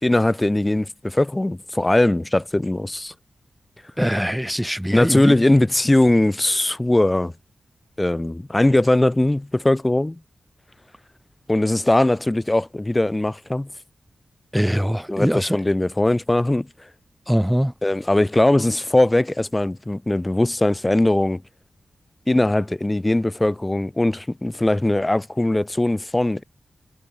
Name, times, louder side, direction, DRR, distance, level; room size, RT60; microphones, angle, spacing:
voice 1, 0.0-3.1 4.9-7.3 8.0-10.2 11.5-13.7 15.1-16.7 17.8-21.4 22.3-26.4, left 1 dB, 20° left, 2.3 m, -20 dB
voice 2, 4.0-5.3 14.5-15.6 17.3-17.7, equal, 5° right, 2.9 m, -22 dB
cardioid pair, 55°, 0 cm